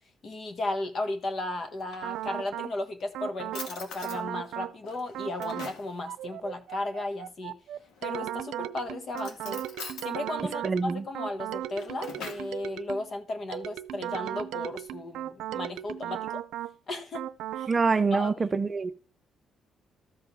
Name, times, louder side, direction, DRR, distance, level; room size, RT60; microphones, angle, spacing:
voice 1, 0.2-7.6 8.0-9.6 10.0-16.4 16.9-17.3 17.6-17.7 18.1-18.4, left 2 dB, 40° left, 1.4 m, -35 dB
Drawer open or close, 1.6-2.6 3.1-3.2 3.5-4.2 4.8-5.9 7.8-8.3 9.1-10.1 11.5-12.5, left 4 dB, 80° left, 2.1 m, -43 dB
sound 1, 2.0-2.7 3.1-3.7 4.0-4.7 5.1-5.7 6.1-13.1 13.5-16.7 17.1-17.7, right 12 dB, 90° right, 0.5 m, -36 dB
voice 2, 10.6-11.0 17.7-18.9, right 4 dB, 25° right, 0.6 m, -25 dB
13.5 x 5.2 x 5.5 m
cardioid pair, 140°, 0 cm